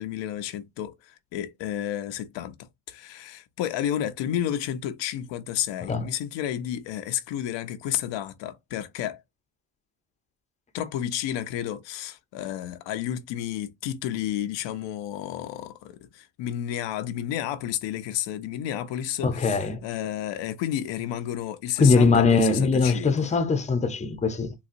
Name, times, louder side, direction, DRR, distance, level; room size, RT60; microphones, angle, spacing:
voice 1, 0.0-2.6 2.9-9.2 10.7-23.3, left 11 dB, 85° left, 0.7 m, -31 dB
voice 2, 19.2-19.8 21.8-24.5, left 4 dB, 15° left, 0.7 m, -21 dB
4.0 x 2.3 x 2.6 m
cardioid pair, 100°, 42 cm